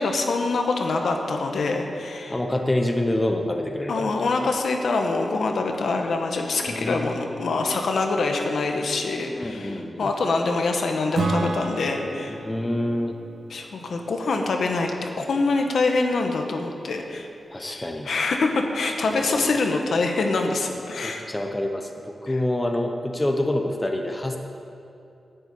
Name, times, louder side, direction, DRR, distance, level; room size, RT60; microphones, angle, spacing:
voice 1, 0.0-2.4 3.9-12.4 13.5-17.3 17.6-21.2 22.3-22.4, left 3 dB, 70° left, 3 dB, 1.2 m, -25 dB
voice 2, 2.3-4.3 6.7-7.4 9.3-10.1 12.3-13.2 17.5-18.1 19.1-19.6 20.8-24.4, left 1 dB, 15° left, 3 dB, 0.8 m, -27 dB
Acoustic guitar / Strum, 11.1-14.7, right 3 dB, 70° right, 1.2 m, -31 dB
10.5 x 7.8 x 8.7 m, 2.6 s
wide cardioid pair, 155°, 0 cm